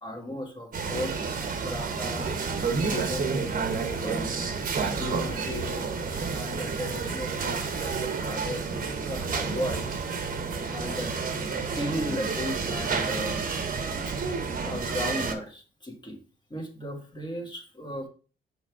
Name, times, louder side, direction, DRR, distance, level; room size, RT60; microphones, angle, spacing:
voice 1, 0.0-1.4 1.6-2.4 2.9-4.3 4.7-5.9 6.3-8.6 9.1-10.0 10.7-11.1 11.8-13.5 14.1-14.3 14.6-16.2 16.5-18.1, equal, 20° left, 2 dB, 1.9 m, -36 dB
sound 1, 0.7-15.3, right 5 dB, 45° right, 1.0 m, -30 dB
6.2 x 3.5 x 4.8 m, 0.37 s
cardioid pair, 90°, 20 cm